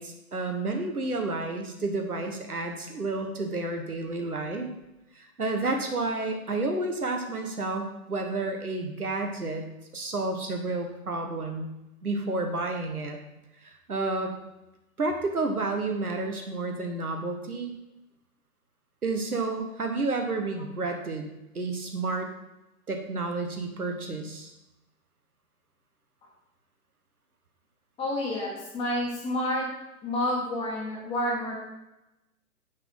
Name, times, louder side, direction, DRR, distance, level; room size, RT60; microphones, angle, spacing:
voice 1, 0.0-4.7 5.1-9.6 9.9-11.7 12.0-13.2 13.6-14.3 15.0-17.8 19.0-21.3 21.5-22.3 22.9-24.5, right 3 dB, 80° right, 4 dB, 1.4 m, -30 dB
voice 2, 28.0-29.6 30.0-31.5, left 1 dB, 15° left, -5 dB, 1.5 m, -29 dB
9.5 x 4.1 x 5.6 m, 0.95 s
figure-of-eight pair, 125°, 44 cm